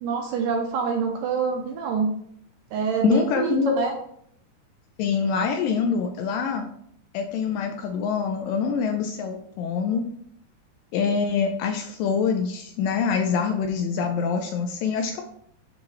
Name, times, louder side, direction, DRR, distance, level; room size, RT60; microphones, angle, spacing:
voice 1, 0.0-2.1 2.7-3.9, right 5 dB, 80° right, 2 dB, 2.0 m, -26 dB
voice 2, 3.0-3.9 5.0-6.7 7.1-10.1 10.9-15.2, left 6 dB, 80° left, 4 dB, 2.0 m, -25 dB
10.5 x 3.8 x 3.1 m, 0.67 s
omnidirectional pair, 4.4 m